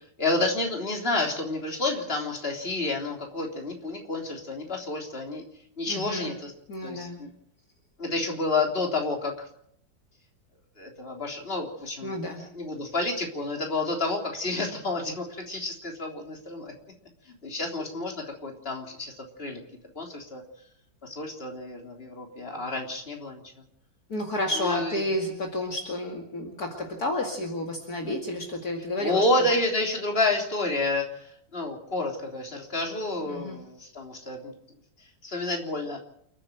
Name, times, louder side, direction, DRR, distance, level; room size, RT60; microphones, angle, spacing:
voice 1, 0.2-5.5 5.8-6.5 6.8-7.3 8.0-9.5 10.8-12.1 12.5-16.7 17.4-19.1 19.4-19.6 20.0-20.4 21.0-23.4 24.6-25.0 29.0-34.5 35.2-36.0, left 2 dB, 30° left, 1 dB, 3.7 m, -29 dB
voice 2, 5.9-6.3 6.7-7.3 12.0-12.4 24.1-29.4 33.2-33.6, left 1 dB, 55° left, 1 dB, 2.8 m, -31 dB
29.0 x 9.9 x 9.2 m, 0.71 s
omnidirectional pair, 2.0 m